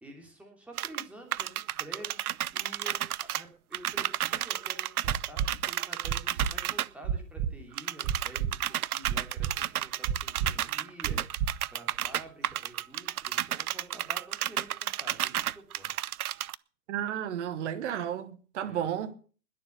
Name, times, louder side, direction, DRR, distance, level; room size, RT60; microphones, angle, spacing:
voice 1, 0.0-16.0 18.5-18.9, right 1 dB, 5° right, 3.1 m, -49 dB
sound 1, 0.8-1.0 1.3-3.4 3.7-6.9 7.8-16.5, right 12 dB, 65° right, 0.6 m, -32 dB
sound 2, 5.0-5.5 6.0-6.5 7.0-7.5 8.0-8.5 9.0-9.5 10.0-10.5 11.0-11.5 12.0-12.1, right 8 dB, 20° right, 0.6 m, -29 dB
voice 2, 16.9-19.1, right 10 dB, 45° right, 1.6 m, -33 dB
21.0 x 7.1 x 6.7 m
hypercardioid pair, 130°, 48 cm